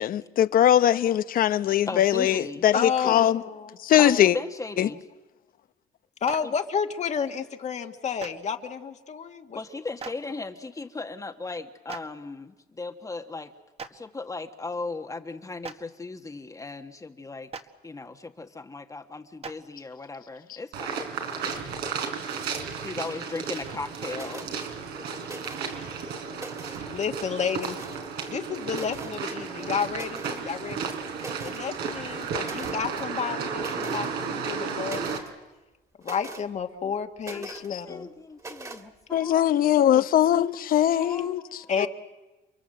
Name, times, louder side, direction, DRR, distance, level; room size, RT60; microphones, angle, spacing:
voice 1, 0.0-3.4 3.8-4.3 4.8-4.9 37.5-37.6 39.1-41.4 41.8-41.9, left 11 dB, 60° left, 1.0 m, -21 dB
voice 2, 1.9-3.1 4.0-5.0 6.4-6.5 9.5-13.5 13.9-17.5 17.8-21.0 22.8-24.6 29.6-29.7 30.3-30.5 37.3-40.2 40.8-41.7, left 3 dB, 20° left, 1.4 m, -37 dB
voice 3, 2.7-3.7 4.0-4.2 6.2-9.6 26.9-27.8 28.3-30.9 31.4-35.2 36.0-38.1 41.7-41.9, left 6 dB, 45° left, 1.7 m, -31 dB
Clapping, 6.2-6.4 8.2-8.3 10.0-10.1 11.9-12.0 13.8-13.9 15.6-15.7 17.5-17.6 19.4-19.5, right 5 dB, 35° right, 1.6 m, -36 dB
sound 1, 20.7-35.2, right 5 dB, 80° right, 4.3 m, -33 dB
sound 2, 24.1-24.5 25.2-25.8 26.2-26.9 27.6-28.1 28.7-29.2 29.9-30.4 30.8-30.9 31.2-31.6 32.4-32.8 33.6-34.1 34.4-35.3 36.0-36.5 37.2-37.7 38.4-38.8, right 2 dB, 20° right, 2.4 m, -41 dB
30.0 x 23.0 x 7.8 m
cardioid pair, 110°, 17 cm